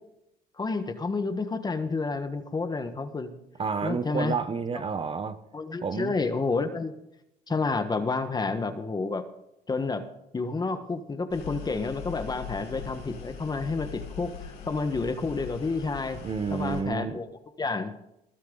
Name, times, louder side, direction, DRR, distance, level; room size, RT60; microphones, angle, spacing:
voice 1, 0.6-3.3 3.8-4.4 5.5-6.9 7.5-9.2 9.7-10.0 10.3-16.2 16.5-17.3 17.6-18.0, left 3 dB, 25° left, 9 dB, 1.4 m, -30 dB
voice 2, 3.6-5.4 5.8-6.1 16.2-17.2, right 5 dB, 35° right, 12 dB, 0.9 m, -30 dB
sound 1, 11.3-16.8, left 7 dB, 85° left, 4.2 m, -41 dB
20.5 x 12.5 x 3.9 m, 0.85 s
cardioid pair, 110°, 17 cm